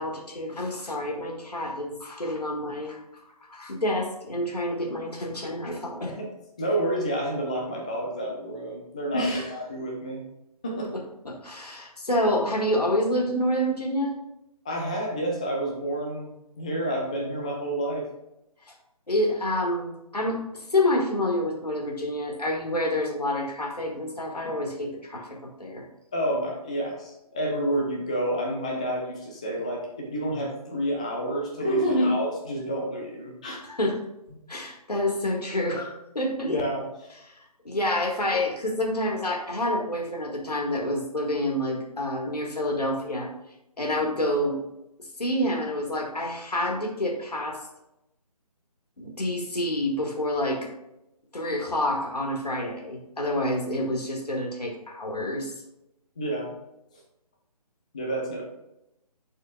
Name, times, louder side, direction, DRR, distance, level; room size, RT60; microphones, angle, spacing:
voice 1, 0.0-3.0 3.5-6.1 10.9-14.1 19.1-20.4 20.7-25.8 33.6-34.0 34.5-36.6 37.7-43.3 43.8-44.6 45.2-47.6 49.0-50.7 51.3-55.5, left 1 dB, 75° left, 0 dB, 1.9 m, -28 dB
voice 2, 6.6-10.3 10.6-10.9 14.6-16.3 16.6-18.1 26.1-33.6 36.6-36.8 56.2-56.5 57.9-58.4, right 1 dB, 10° left, -1 dB, 0.3 m, -29 dB
10.5 x 4.3 x 2.5 m, 0.88 s
figure-of-eight pair, 150°, 20 cm